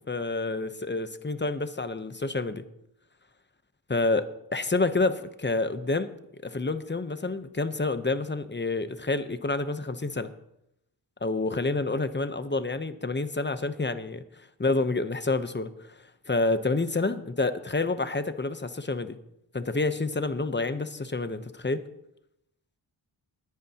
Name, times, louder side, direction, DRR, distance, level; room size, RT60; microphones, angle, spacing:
voice 1, 0.1-2.6 3.9-4.3 4.5-6.1 6.4-10.3 11.2-14.2 14.6-15.7 16.3-19.2 19.5-21.8, left 3 dB, 25° left, 11 dB, 0.9 m, -28 dB
20.5 x 9.6 x 2.9 m, 0.82 s
wide cardioid pair, 50°, 48 cm